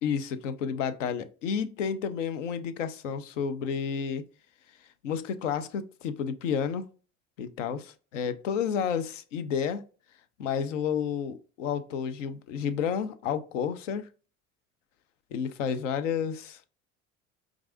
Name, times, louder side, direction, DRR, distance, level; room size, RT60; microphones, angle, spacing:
voice 1, 0.0-4.2 5.0-6.9 7.4-9.8 10.4-14.1 15.3-16.7, left 7 dB, 75° left, 0.5 m, -31 dB
4.6 x 2.4 x 2.5 m
figure-of-eight pair, 65°, 37 cm